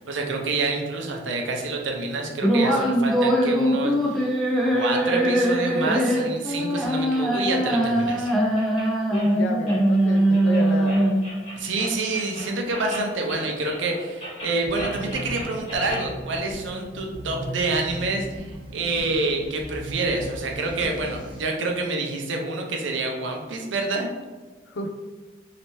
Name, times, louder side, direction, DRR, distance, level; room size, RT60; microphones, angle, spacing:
voice 1, 0.1-4.3 4.7-8.3 11.6-24.1, right 3 dB, 85° right, 1 dB, 0.6 m, -27 dB
sound 1, 2.4-11.4, right 1 dB, ahead, 0.4 m, -21 dB
sound 2, 6.1-16.1, equal, 30° left, 1.3 m, -40 dB
voice 2, 9.1-11.0 24.7-24.9, left 1 dB, 80° left, 4 dB, 0.5 m, -31 dB
sound 3, 14.6-21.4, right 1 dB, 25° right, 1.0 m, -37 dB
3.2 x 2.9 x 3.0 m, 1.3 s
head